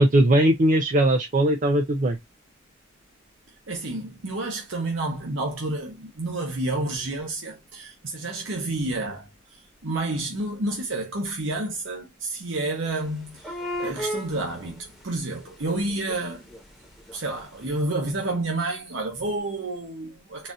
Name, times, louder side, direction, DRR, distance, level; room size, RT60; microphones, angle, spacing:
voice 1, 0.0-2.2, right 1 dB, 40° right, 0.5 m, -19 dB
voice 2, 3.7-16.4 17.1-20.5, right 2 dB, 65° right, 0.9 m, -30 dB
sound 1, 13.0-13.1 13.3-15.1 15.5-17.4 17.7-17.8, equal, ahead, 1.0 m, -35 dB
4.0 x 2.5 x 2.3 m
head